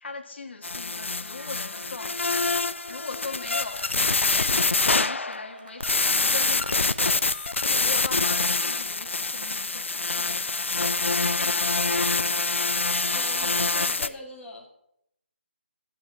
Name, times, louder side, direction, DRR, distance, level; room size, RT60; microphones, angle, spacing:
voice 1, 0.0-3.8 4.3-7.3 7.6-11.9, left 4 dB, 65° left, 4 dB, 1.5 m, -40 dB
sound 1, 0.6-5.5 5.8-14.1, left 3 dB, 85° left, 0.6 m, -25 dB
sound 2, 1.4-13.9, right 3 dB, 45° right, 1.9 m, -51 dB
voice 2, 13.1-14.7, left 2 dB, 15° left, -4 dB, 2.2 m, -41 dB
11.0 x 7.2 x 6.4 m, 0.75 s
figure-of-eight pair, 155°, 7 cm